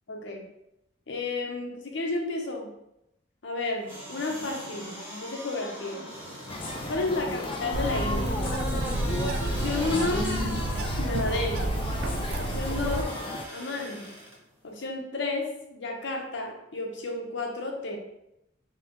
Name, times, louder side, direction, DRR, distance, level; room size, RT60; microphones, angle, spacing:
voice 1, 0.1-0.5 1.1-2.7 3.4-6.0 6.9-8.3 9.5-10.3 11.0-11.7 12.4-13.1 13.5-14.1 14.6-18.0, left 3 dB, 60° left, 1 dB, 0.7 m, -32 dB
sound 1, 3.8-14.3 14.8-14.9, equal, 10° right, 1.0 m, -39 dB
sound 2, 6.5-13.5, left 2 dB, 25° left, 0.3 m, -34 dB
Bird, 7.7-13.0, right 1 dB, 55° right, 0.3 m, -30 dB
2.9 x 2.9 x 3.5 m, 0.82 s
head